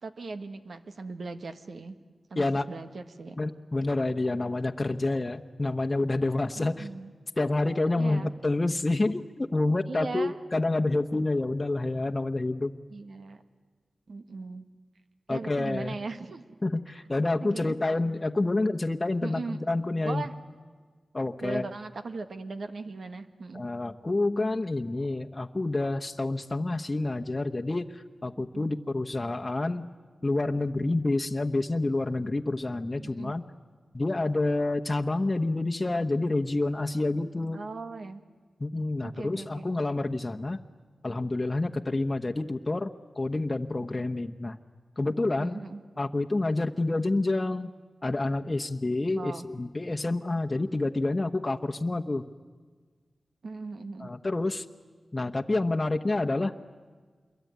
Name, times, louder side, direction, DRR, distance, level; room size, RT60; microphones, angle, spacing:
voice 1, 0.0-2.0 2.3-3.4 6.6-7.1 7.9-8.3 9.9-10.3 12.9-13.4 14.1-14.6 15.3-16.4 17.4-17.8 19.2-19.6 20.0-20.3 21.4-23.6 28.4-28.7 33.0-33.4 37.5-38.2 39.0-39.7 45.4-45.8 49.1-49.5 53.4-54.1, right 3 dB, 75° right, 9 dB, 1.6 m, -38 dB
voice 2, 2.4-2.7 3.4-6.9 7.4-12.7 15.3-16.0 16.6-20.3 21.1-21.7 23.5-29.9 30.2-33.4 33.9-37.6 38.6-40.6 41.0-42.9 43.2-44.6 45.0-45.6 46.0-47.7 48.0-52.2 54.0-54.6 55.1-56.5, left 2 dB, 35° left, 4 dB, 1.1 m, -28 dB
27.0 x 22.5 x 9.4 m, 1.5 s
cardioid pair, 45°, 0 cm